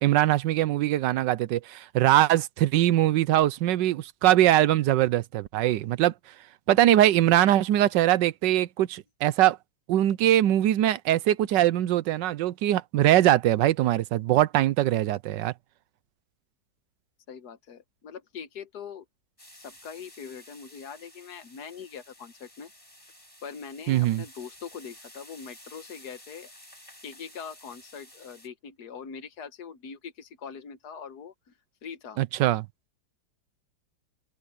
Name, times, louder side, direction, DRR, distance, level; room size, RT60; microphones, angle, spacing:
voice 1, 0.0-6.1 6.7-9.6 9.9-15.5 23.9-24.2 32.2-32.7, right 13 dB, 85° right, 1.3 m, -22 dB
voice 2, 17.3-19.1 19.5-22.7 23.4-26.5 27.0-31.3 31.8-32.2, left 6 dB, 65° left, 1.6 m, -42 dB
sound 1, 19.4-28.5, left 1 dB, 15° left, 6.3 m, -52 dB
open air
omnidirectional pair, 1.9 m